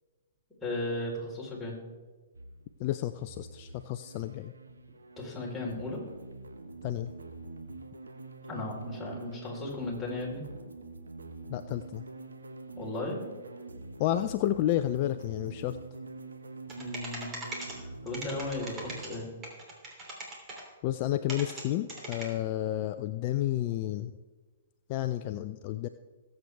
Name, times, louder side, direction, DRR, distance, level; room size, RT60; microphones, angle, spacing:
voice 1, 0.6-1.7 5.2-6.0 8.5-10.4 12.7-13.2 16.8-17.3 18.0-19.3, left 2 dB, 5° left, -5 dB, 4.0 m, -35 dB
sound 1, 2.3-19.1, right 3 dB, 85° right, 1.4 m, -45 dB
voice 2, 2.8-4.5 6.8-7.1 11.5-12.0 14.0-15.8 20.8-24.1 24.9-25.9, left 13 dB, 40° left, 10 dB, 0.5 m, -31 dB
sound 2, 16.7-17.7 18.1-19.2 19.4-20.6 21.3-21.6 21.9-22.2, right 2 dB, 25° right, 3.1 m, -39 dB
20.5 x 7.9 x 3.5 m, 1.4 s
hypercardioid pair, 120°, 0 cm